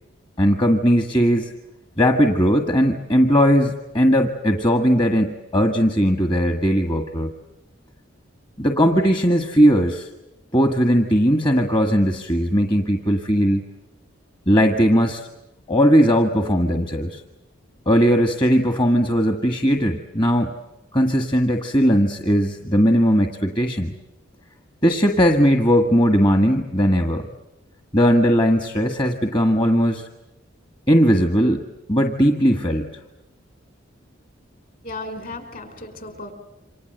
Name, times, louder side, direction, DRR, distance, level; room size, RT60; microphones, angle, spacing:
voice 1, 0.4-1.5 2.0-7.3 8.6-10.1 10.5-13.6 14.5-15.3 15.7-17.2 17.8-20.5 20.9-23.9 24.8-27.2 27.9-30.1 30.9-31.6 31.9-33.0, equal, 25° left, 5 dB, 1.6 m, -18 dB
voice 2, 34.8-36.3, left 2 dB, 45° left, 8 dB, 5.1 m, -35 dB
28.5 x 26.0 x 7.9 m, 0.97 s
head